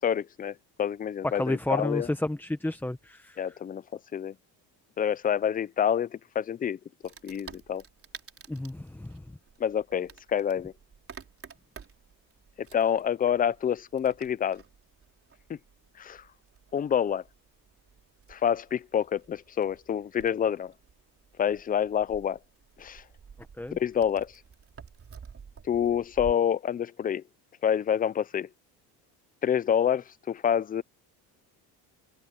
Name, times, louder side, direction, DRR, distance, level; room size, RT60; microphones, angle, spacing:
voice 1, 0.0-2.1 3.4-3.8 4.1-4.3 5.0-6.8 7.2-7.8 9.6-10.7 12.7-14.6 15.5-15.6 16.0-16.2 16.7-17.2 18.3-20.7 21.4-22.4 22.8-23.0 23.7-24.3 25.7-27.2 27.6-28.5 29.4-30.8, left 8 dB, 20° left, 0.4 m, -27 dB
voice 2, 1.2-3.4 8.5-9.2 23.6-23.8, left 1 dB, 5° left, 1.1 m, -31 dB
Wood, 7.0-26.3, right 6 dB, 30° right, 4.1 m, -51 dB
cardioid pair, 120°, 42 cm